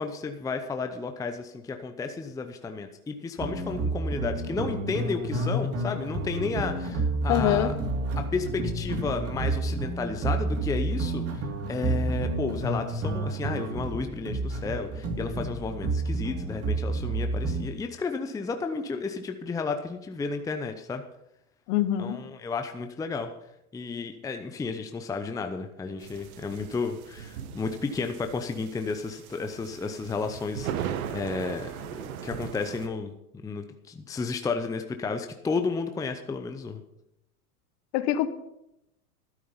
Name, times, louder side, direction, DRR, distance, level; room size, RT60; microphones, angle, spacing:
voice 1, 0.0-7.8 8.2-21.0 22.0-23.3 23.7-36.8, left 4 dB, 10° left, 7 dB, 0.7 m, -32 dB
sound 1, 3.4-17.6, right 2 dB, 30° right, 2.0 m, -30 dB
voice 2, 7.3-7.7 21.7-22.2 37.9-38.3, left 12 dB, 50° left, 12 dB, 1.3 m, -24 dB
sound 2, 26.0-32.9, right 9 dB, 70° right, 1.3 m, -38 dB
12.0 x 9.5 x 5.6 m, 0.84 s
hypercardioid pair, 115°, 44 cm